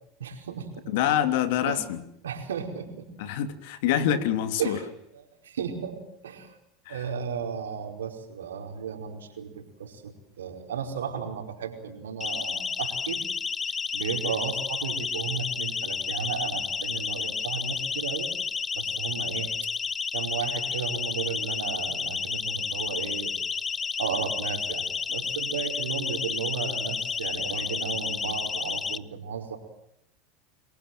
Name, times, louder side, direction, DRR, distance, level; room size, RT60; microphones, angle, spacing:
voice 1, 0.2-0.9 1.6-1.8 2.2-3.1 4.6-4.9 5.1-6.6 6.9-13.2 13.9-18.3 18.7-19.7 20.1-23.3 24.0-29.6, right 7 dB, 85° right, 4 dB, 5.0 m, -34 dB
voice 2, 0.9-2.0 3.2-4.8 6.9-7.0, left 10 dB, 70° left, 9 dB, 3.2 m, -26 dB
Siren, 12.2-29.0, left 5 dB, 25° left, 1.0 m, -31 dB
27.5 x 22.0 x 7.6 m, 0.77 s
hypercardioid pair, 85°, 0 cm